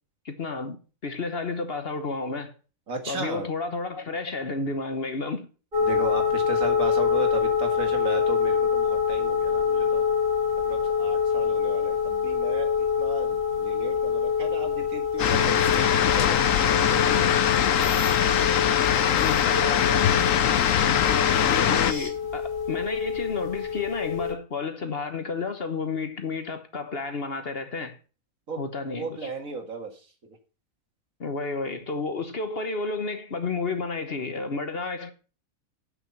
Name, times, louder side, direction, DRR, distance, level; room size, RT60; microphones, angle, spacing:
voice 1, 0.2-2.5 3.0-5.5 19.2-20.0 20.8-28.0 28.6-29.3 31.2-35.1, left 4 dB, 45° left, 1.2 m, -31 dB
voice 2, 2.9-3.5 5.9-10.1 10.7-12.7 13.0-18.0 28.5-28.7 29.0-29.9, right 3 dB, 70° right, 2.5 m, -35 dB
sound 1, 5.7-24.3, left 6 dB, 40° right, 3.6 m, -26 dB
sound 2, 15.2-21.9, left 10 dB, 70° left, 1.1 m, -22 dB
sound 3, 15.2-22.1, left 1 dB, 15° left, 2.2 m, -37 dB
9.1 x 6.1 x 7.0 m
omnidirectional pair, 1.5 m